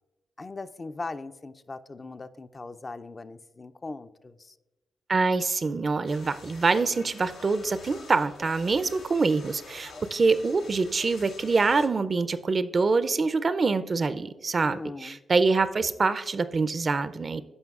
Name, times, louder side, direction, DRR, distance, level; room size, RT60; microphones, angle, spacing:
voice 1, 0.4-4.6 14.6-15.2, left 3 dB, 40° left, 10 dB, 0.4 m, -39 dB
voice 2, 5.1-17.4, right 4 dB, 45° right, 14 dB, 0.4 m, -25 dB
sound 1, 6.0-11.9, left 3 dB, 85° left, 0.7 m, -47 dB
15.0 x 5.1 x 2.4 m, 1.1 s
supercardioid pair, 45°, 0 cm